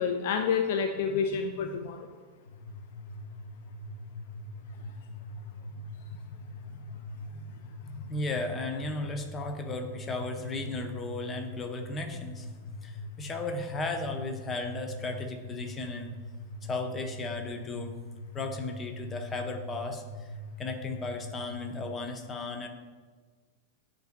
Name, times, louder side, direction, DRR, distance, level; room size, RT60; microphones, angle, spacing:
voice 1, 0.0-2.1 7.3-7.5 7.8-8.0, left 6 dB, 50° left, 5 dB, 0.4 m, -29 dB
sound 1, 2.5-22.0, left 1 dB, 80° left, 0.7 m, -42 dB
voice 2, 8.1-12.5 12.8-16.1 16.6-18.0 18.3-20.3 20.6-22.7, left 3 dB, 20° left, 4 dB, 0.8 m, -35 dB
10.5 x 4.0 x 2.3 m, 1.4 s
figure-of-eight pair, 90°, 0 cm